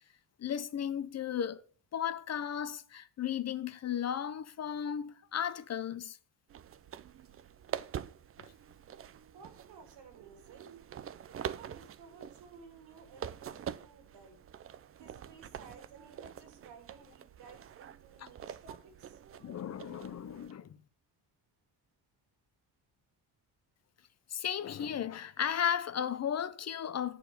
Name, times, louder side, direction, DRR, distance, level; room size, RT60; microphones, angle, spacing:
voice 1, 0.4-1.6 1.9-6.2 18.2-18.3 19.4-20.8 24.3-27.2, left 9 dB, 40° left, 0.5 m, -35 dB
sound 1, 6.5-20.5, right 9 dB, 35° right, 0.4 m, -45 dB
voice 2, 9.3-10.7 11.4-14.4 15.0-19.2, right 5 dB, 85° right, 2.7 m, -55 dB
8.1 x 4.7 x 6.7 m
cardioid pair, 140°, 42 cm